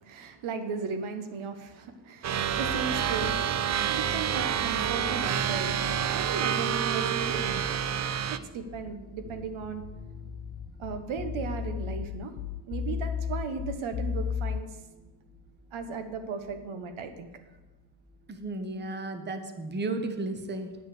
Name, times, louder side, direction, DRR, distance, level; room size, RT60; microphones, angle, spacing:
voice 1, 0.0-3.6 3.9-7.8 8.5-9.8 10.8-12.3 12.7-14.7 15.7-17.3, right 5 dB, 85° right, 7 dB, 1.1 m, -36 dB
sound 1, 2.2-8.4, right 9 dB, 40° right, 0.4 m, -28 dB
sound 2, 2.3-18.5, left 1 dB, ahead, 1.5 m, -47 dB
sound 3, 9.3-14.6, left 7 dB, 70° left, 0.6 m, -34 dB
voice 2, 18.3-20.8, right 2 dB, 20° right, 7 dB, 0.9 m, -34 dB
9.1 x 5.4 x 7.8 m, 1.2 s
cardioid pair, 120°, 47 cm